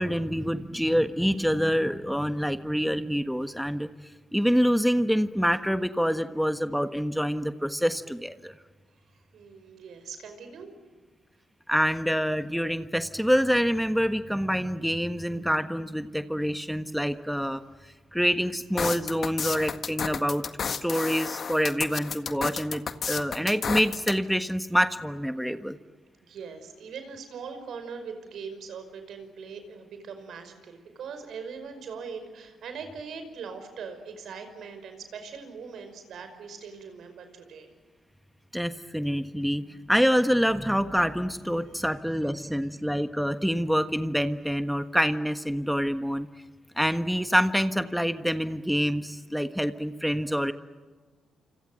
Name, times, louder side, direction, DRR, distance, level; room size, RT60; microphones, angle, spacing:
voice 1, 0.0-3.9 4.3-8.5 11.7-17.6 18.1-22.8 23.1-25.8 38.5-46.3 46.8-50.5, equal, ahead, 9 dB, 1.4 m, -26 dB
voice 2, 9.3-10.7 26.2-37.7, right 5 dB, 70° right, 8 dB, 5.4 m, -41 dB
sound 1, 18.8-24.1, left 6 dB, 55° left, 1.7 m, -31 dB
28.5 x 26.5 x 7.9 m, 1.4 s
supercardioid pair, 55°, 0 cm